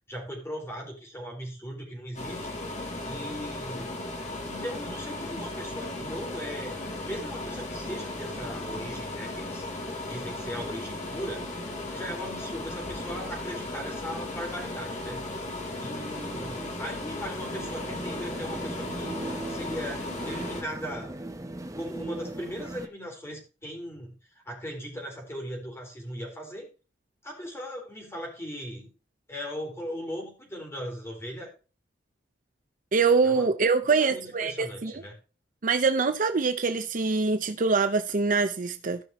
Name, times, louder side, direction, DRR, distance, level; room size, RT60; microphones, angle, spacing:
voice 1, 0.1-2.5 3.0-3.9 4.5-6.7 7.0-9.6 10.1-11.6 11.9-15.2 15.8-19.2 19.5-21.2 21.8-26.7 27.2-28.9 29.3-31.5 33.2-33.5 33.9-35.2, equal, 15° left, 4.0 m, -38 dB
sound 1, 2.1-20.6, left 2 dB, 40° left, 2.5 m, -36 dB
sound 2, 7.1-22.9, right 2 dB, 20° right, 0.9 m, -42 dB
voice 2, 32.9-35.0 35.6-39.0, right 4 dB, 45° right, 0.6 m, -24 dB
16.0 x 5.9 x 3.0 m
head